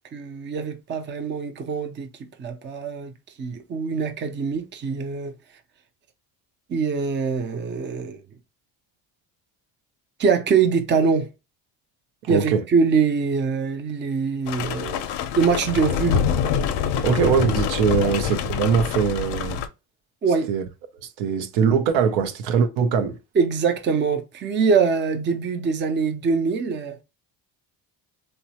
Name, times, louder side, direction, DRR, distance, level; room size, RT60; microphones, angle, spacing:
voice 1, 0.1-2.1 2.4-3.1 3.4-5.3 6.7-8.2 10.2-11.3 12.3-15.1 15.3-16.2 18.0-18.1 20.2-20.5 23.4-27.0, right 5 dB, 25° right, 0.4 m, -23 dB
voice 2, 12.2-12.6 17.0-19.6 20.5-20.6 21.2-23.2, right 6 dB, 80° right, 0.6 m, -21 dB
sound 1, 14.5-19.7, left 7 dB, 65° left, 0.5 m, -25 dB
3.0 x 2.1 x 2.7 m
supercardioid pair, 85°, 46 cm